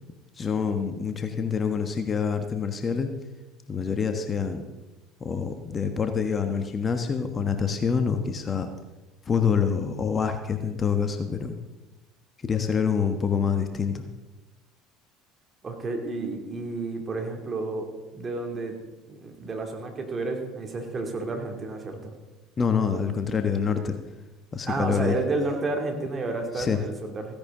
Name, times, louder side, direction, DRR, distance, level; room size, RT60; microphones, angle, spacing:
voice 1, 0.4-3.1 3.7-4.6 5.2-8.7 9.3-11.6 12.4-14.0 22.6-23.9 24.5-25.2 26.6-26.8, left 6 dB, 30° left, 7 dB, 1.2 m, -26 dB
voice 2, 15.6-18.7 19.1-22.2 24.7-27.3, right 3 dB, 30° right, 3 dB, 2.7 m, -31 dB
16.0 x 10.0 x 3.8 m, 1.1 s
hypercardioid pair, 70°, 0 cm